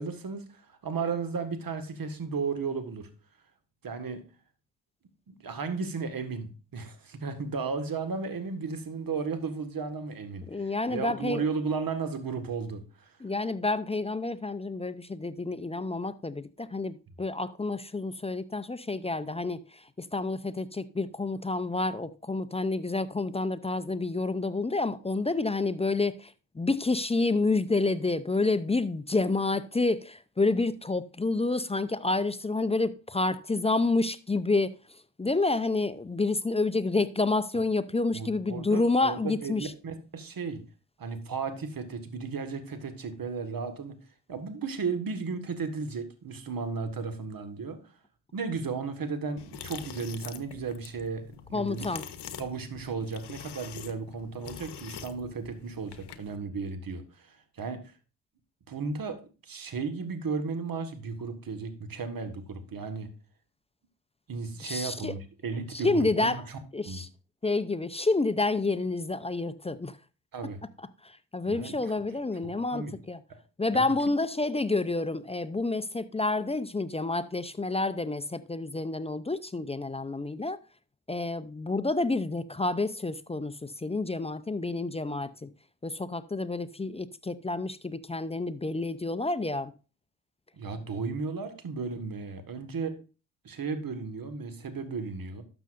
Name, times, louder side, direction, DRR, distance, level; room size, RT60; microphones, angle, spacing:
voice 1, 0.0-3.1 3.8-4.2 5.3-10.6 10.9-13.1 38.1-40.6 41.0-44.0 44.3-47.8 48.3-51.9 52.4-57.8 58.7-63.1 64.3-66.4 66.9-67.0 70.3-70.6 71.5-71.8 72.4-72.9 73.3-73.4 73.7-73.8 90.6-93.0 93.4-95.4, right 4 dB, 45° right, 1.7 m, -34 dB
voice 2, 10.5-11.4 13.2-39.7 51.5-52.0 64.6-65.1 65.7-66.5 66.7-67.1 67.4-70.0 70.8-73.2 73.6-80.6 81.1-85.5 85.8-89.7, left 3 dB, 15° left, 0.5 m, -29 dB
sound 1, 49.4-56.4, left 8 dB, 60° left, 1.0 m, -45 dB
12.0 x 6.8 x 2.5 m
hypercardioid pair, 45°, 47 cm